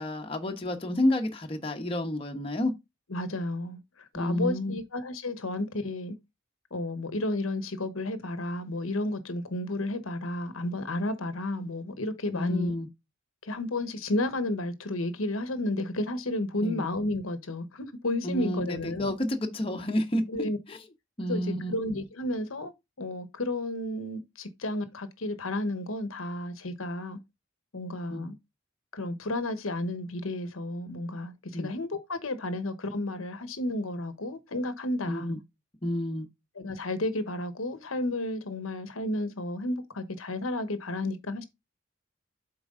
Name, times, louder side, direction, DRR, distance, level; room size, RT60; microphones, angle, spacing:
voice 1, 0.0-2.7 4.1-4.8 12.3-12.9 16.6-16.8 18.2-20.8 21.2-21.7 28.1-28.3 31.5-31.7 35.1-35.4 35.8-36.3, left 1 dB, 25° left, 1.1 m, -30 dB
voice 2, 3.1-6.2 6.7-12.7 13.4-19.1 20.3-20.6 21.3-22.7 23.0-27.2 27.7-28.3 28.9-35.4 36.6-41.4, left 1 dB, 85° left, 1.1 m, -32 dB
7.8 x 4.6 x 3.8 m
head